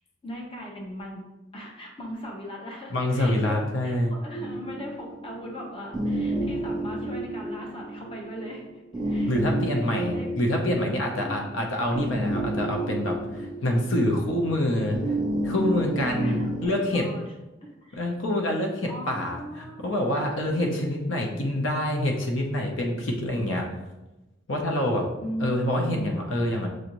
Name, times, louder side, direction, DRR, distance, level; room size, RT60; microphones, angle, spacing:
voice 1, 0.2-1.2 1.5-8.7 8.9-9.3 10.1-10.3 11.2-11.6 16.2-17.2 17.6-18.0 18.9-20.9 25.2-26.0, equal, 30° left, -1 dB, 0.8 m, -38 dB
voice 2, 2.9-4.1 9.3-15.0 15.4-17.0 17.9-23.7 24.5-25.1 25.4-26.7, left 1 dB, 80° left, 1 dB, 0.7 m, -26 dB
sound 1, 4.3-16.7, right 1 dB, ahead, 1.0 m, -31 dB
6.3 x 2.6 x 2.9 m, 1.0 s
head